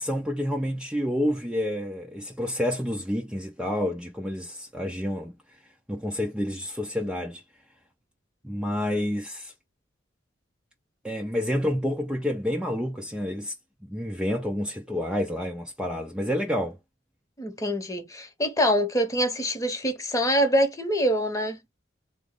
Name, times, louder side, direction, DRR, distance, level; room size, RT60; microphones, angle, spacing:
voice 1, 0.0-5.6 5.9-7.4 8.4-9.5 11.0-13.5 13.8-16.8, left 1 dB, 5° right, 0.4 m, -29 dB
voice 2, 17.4-21.6, equal, 15° left, 0.8 m, -25 dB
3.7 x 2.0 x 3.7 m
head